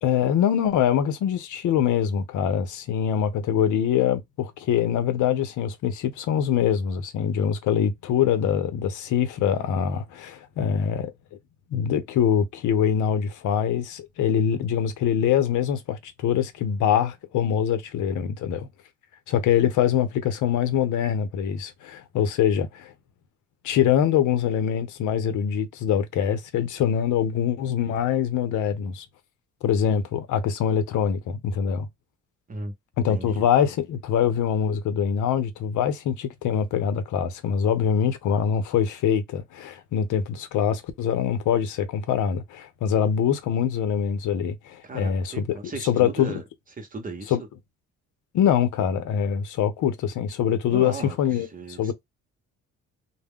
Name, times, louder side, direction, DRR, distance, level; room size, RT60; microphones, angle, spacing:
voice 1, 0.0-11.1 11.7-18.7 19.3-22.9 23.6-29.1 29.6-31.9 33.0-45.4 45.8-46.4 47.3-47.4 48.3-51.5 51.8-51.9, left 8 dB, 80° left, 0.7 m, -24 dB
voice 2, 33.1-33.5 44.8-46.4 46.8-47.4 50.7-51.9, right 3 dB, 30° right, 0.8 m, -36 dB
2.3 x 2.1 x 3.5 m
cardioid pair, 90°, 30 cm